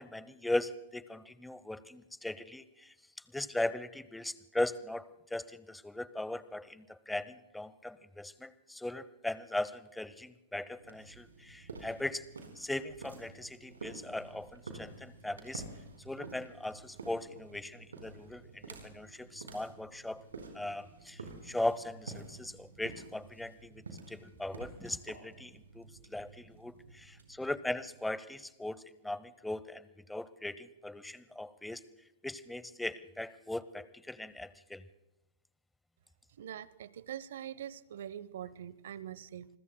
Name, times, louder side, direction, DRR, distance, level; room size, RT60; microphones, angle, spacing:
voice 1, 0.0-2.9 3.3-12.2 12.6-15.6 16.0-20.2 20.5-31.8 32.2-34.8, left 1 dB, 5° left, 16 dB, 0.8 m, -39 dB
sound 1, 10.8-28.3, right 3 dB, 90° right, 4.4 m, -50 dB
voice 2, 36.4-39.5, right 10 dB, 70° right, 20 dB, 0.8 m, -43 dB
28.5 x 21.0 x 2.3 m, 0.97 s
hypercardioid pair, 115°, 0 cm